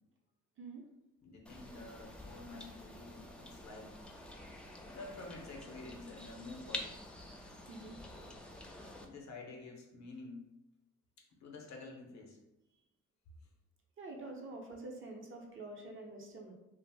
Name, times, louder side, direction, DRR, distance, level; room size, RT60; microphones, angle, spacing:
voice 1, 1.2-3.9 4.9-7.0 8.9-10.4 11.2-12.4, left 3 dB, 65° left, 1 dB, 0.7 m, -49 dB
sound 1, 1.5-9.1, left 1 dB, 5° left, 0.3 m, -48 dB
voice 2, 7.7-8.0 14.0-16.5, right 2 dB, 45° right, 0 dB, 0.7 m, -47 dB
2.4 x 2.1 x 3.3 m, 0.94 s
cardioid pair, 90°, 30 cm